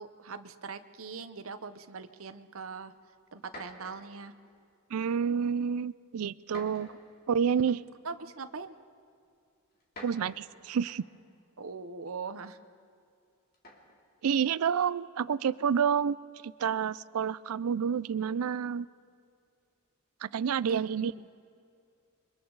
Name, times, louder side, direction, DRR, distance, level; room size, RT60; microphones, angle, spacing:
voice 1, 0.0-2.9 3.3-4.3 6.9-7.0 7.5-7.8 8.0-8.7 11.6-12.6 20.7-20.9, right 4 dB, 70° right, 11 dB, 0.9 m, -41 dB
sound 1, 2.8-2.9 3.4-4.2 5.1-5.4 6.5-7.2 8.3-8.4 9.7-11.2 13.5-14.0, left 1 dB, 45° left, 3.1 m, -49 dB
voice 2, 4.9-6.9 7.3-7.8 10.0-11.0 14.2-16.2 16.4-18.9 20.2-21.1, right 7 dB, 85° right, 19 dB, 0.4 m, -29 dB
28.0 x 24.0 x 4.0 m, 2.3 s
head